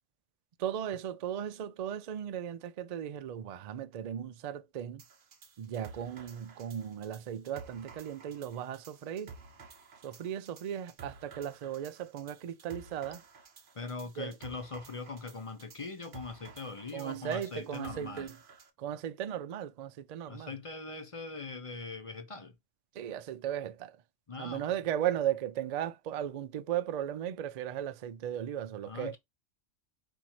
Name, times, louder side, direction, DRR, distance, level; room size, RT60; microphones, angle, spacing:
voice 1, 0.6-5.0 5.6-9.3 10.0-13.2 14.2-14.3 16.9-18.4 18.8-20.5 22.9-24.0 24.4-29.2, right 10 dB, 80° right, 0.3 m, -36 dB
sound 1, 5.0-18.7, right 4 dB, 50° right, 0.9 m, -53 dB
voice 2, 13.7-18.3 20.3-22.5 24.3-24.7 28.8-29.2, left 3 dB, 35° left, 0.6 m, -41 dB
4.5 x 2.5 x 4.2 m
omnidirectional pair, 1.2 m